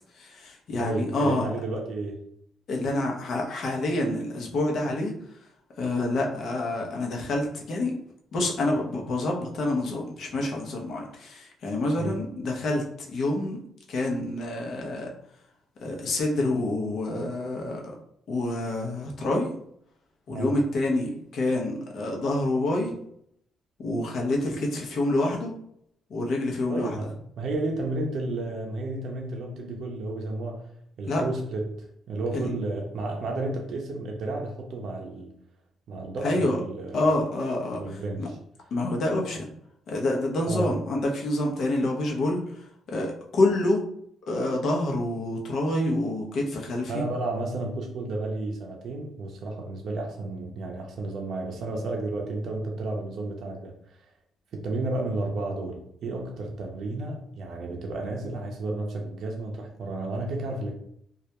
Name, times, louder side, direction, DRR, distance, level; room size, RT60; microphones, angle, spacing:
voice 1, 0.1-1.5 2.7-5.1 5.8-8.0 8.3-13.6 13.9-15.1 15.8-18.0 18.3-19.5 20.3-22.9 23.8-25.5 26.1-27.1 31.1-31.2 32.3-32.5 36.2-36.6 36.9-37.8 38.2-38.3 38.7-39.5 39.9-43.8 44.2-47.0, left 2 dB, 65° left, 0 dB, 0.6 m, -27 dB
voice 2, 0.8-2.2 12.0-12.2 20.3-20.6 26.7-30.7 31.0-35.3 35.9-37.1 37.8-38.4 40.5-40.8 46.9-54.1 54.5-60.7, right 2 dB, 65° right, 1 dB, 0.5 m, -32 dB
2.3 x 2.1 x 2.8 m, 0.70 s
cardioid pair, 90°, 0 cm